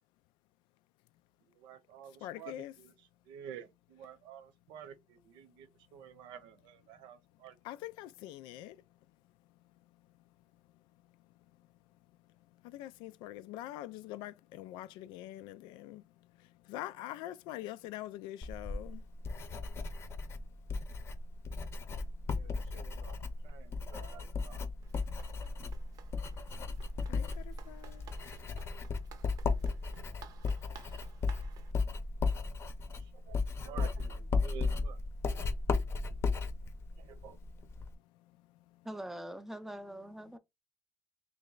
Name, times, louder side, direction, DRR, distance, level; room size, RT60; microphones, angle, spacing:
voice 1, 1.5-2.9 3.3-7.6 22.3-23.2 23.4-24.6 33.0-35.0 37.0-37.4, right 9 dB, 80° right, 0.8 m, -50 dB
voice 2, 2.0-2.8 6.1-6.2 6.9-7.0 7.3-33.7 34.4-34.5 35.1-38.9, left 14 dB, 85° left, 0.4 m, -50 dB
Writing, 18.4-37.9, left 4 dB, 35° left, 0.7 m, -36 dB
Run, 24.8-31.7, right 6 dB, 50° right, 0.6 m, -54 dB
voice 3, 38.8-40.4, right 1 dB, 5° right, 0.5 m, -43 dB
3.3 x 3.1 x 3.8 m
cardioid pair, 160°, 8 cm